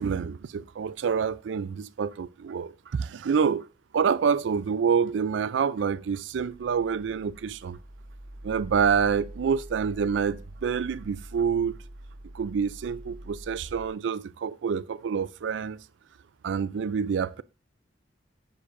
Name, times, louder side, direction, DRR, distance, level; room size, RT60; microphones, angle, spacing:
voice 1, 0.0-3.6 3.9-7.8 8.4-11.8 12.3-15.8 16.4-17.4, right 6 dB, 70° right, 0.4 m, -27 dB
sound 1, 6.4-13.9, right 1 dB, 55° right, 1.6 m, -45 dB
10.0 x 6.6 x 2.5 m
head